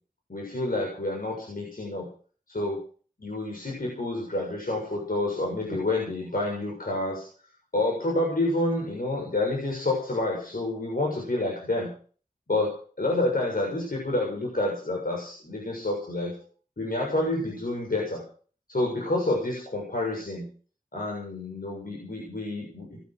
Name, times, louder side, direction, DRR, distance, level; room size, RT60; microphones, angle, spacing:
voice 1, 0.3-2.1 2.5-2.8 3.2-7.3 7.7-11.9 12.5-16.4 16.8-18.2 18.7-20.5 20.9-23.0, left 2 dB, 85° left, -2 dB, 7.0 m, -28 dB
21.0 x 10.0 x 6.7 m, 0.42 s
wide cardioid pair, 45°, 15 cm